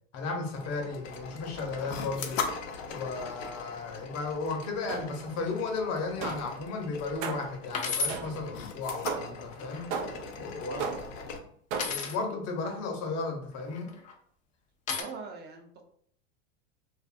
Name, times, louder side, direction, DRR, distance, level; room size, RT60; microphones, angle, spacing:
voice 1, 0.1-2.4 2.9-9.9 10.4-10.9 11.9-13.9, left 4 dB, 45° left, 3 dB, 0.8 m, -34 dB
sound 1, 0.5-11.4, left 5 dB, 85° left, 0.6 m, -40 dB
sound 2, 4.9-5.4 6.2-6.6 7.2-7.6 8.1-8.6 9.1-9.5 9.9-10.4 10.8-11.3 11.7-12.2, right 6 dB, 75° right, 0.5 m, -36 dB
sound 3, 6.3-6.6 7.1-7.2 7.7-8.2 9.4-10.0 11.7-12.2 13.6-14.1 14.9-15.0, left 4 dB, 20° left, 0.3 m, -33 dB
voice 2, 10.7-11.0 15.0-15.8, right 4 dB, 25° right, 3 dB, 0.5 m, -41 dB
2.5 x 2.4 x 2.4 m, 0.62 s
hypercardioid pair, 100°, 38 cm